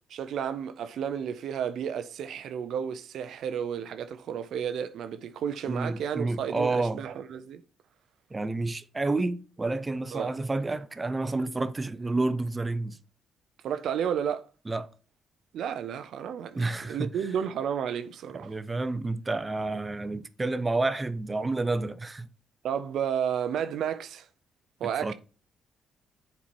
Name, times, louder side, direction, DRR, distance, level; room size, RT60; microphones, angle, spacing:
voice 1, 0.1-7.6 10.1-10.3 13.6-14.4 15.5-18.5 22.6-24.3 24.8-25.1, right 8 dB, 75° right, 0.4 m, -32 dB
voice 2, 5.7-7.0 8.3-13.0 14.7-14.9 16.5-17.1 18.3-22.3 24.8-25.1, right 2 dB, 20° right, 0.5 m, -30 dB
7.3 x 4.3 x 4.2 m
cardioid pair, 90°, 0 cm